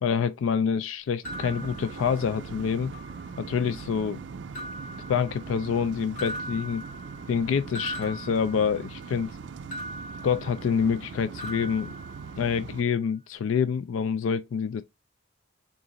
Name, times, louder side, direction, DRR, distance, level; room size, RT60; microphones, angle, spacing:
voice 1, 0.0-2.9 3.4-4.2 5.1-6.8 7.3-9.3 10.2-11.9 12.4-14.8, left 6 dB, 80° left, 0.3 m, -27 dB
sound 1, 1.2-2.5 2.9-3.7 4.5-5.8 6.2-9.1 9.7-11.1 11.4-12.7, equal, 40° left, 2.7 m, -41 dB
sound 2, 1.2-12.8, right 5 dB, 60° right, 0.4 m, -41 dB
3.9 x 2.5 x 3.7 m
head